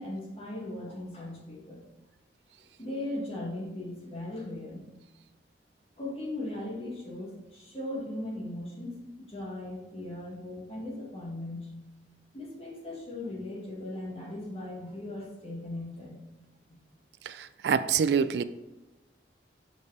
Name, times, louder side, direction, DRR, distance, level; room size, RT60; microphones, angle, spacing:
voice 1, 0.0-1.8 2.8-4.8 6.0-11.7 12.3-16.2, left 1 dB, 35° left, -4 dB, 2.1 m, -38 dB
voice 2, 17.3-18.4, right 6 dB, 70° right, 14 dB, 0.3 m, -26 dB
6.5 x 5.3 x 4.1 m, 1.1 s
head